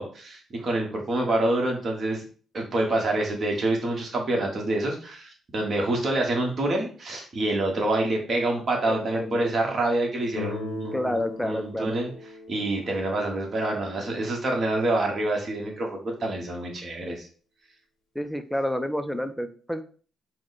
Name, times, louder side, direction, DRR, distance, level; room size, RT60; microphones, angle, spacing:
voice 1, 0.0-2.2 2.5-11.2 11.4-12.1 12.5-17.3, right 2 dB, 45° right, 0 dB, 1.4 m, -27 dB
voice 2, 8.9-9.5 10.9-11.9 18.1-19.8, left 1 dB, ahead, 9 dB, 0.5 m, -29 dB
Guitar, 10.4-15.2, left 4 dB, 85° left, 0.8 m, -41 dB
4.6 x 2.2 x 4.1 m, 0.41 s
cardioid pair, 90°, 0 cm